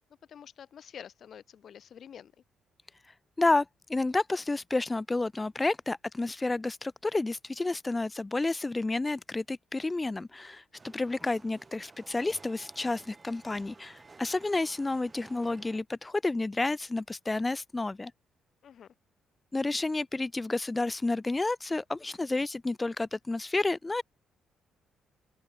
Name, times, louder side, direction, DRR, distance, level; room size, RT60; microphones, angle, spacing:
voice 1, 0.3-2.3 18.6-18.9, left 8 dB, 60° left, 3.4 m, -48 dB
voice 2, 3.0-18.1 19.5-24.0, left 2 dB, 20° left, 1.2 m, -30 dB
sound 1, 10.8-15.8, right 3 dB, 25° right, 3.6 m, -54 dB
open air
cardioid pair, 90°, 0 cm